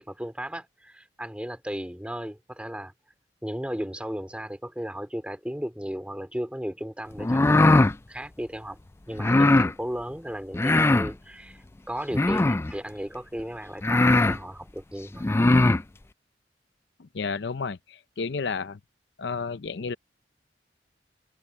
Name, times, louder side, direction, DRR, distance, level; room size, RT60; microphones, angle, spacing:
voice 1, 0.0-2.9 3.4-8.8 9.1-15.3, equal, 5° right, 2.5 m, -35 dB
sound 1, 7.2-7.9 9.2-9.7 10.5-11.1 12.1-12.7 13.4-13.5 13.8-14.4 15.2-15.8, left 2 dB, 15° left, 0.3 m, -20 dB
voice 2, 17.0-18.8 19.2-20.0, left 5 dB, 70° left, 0.6 m, -31 dB
head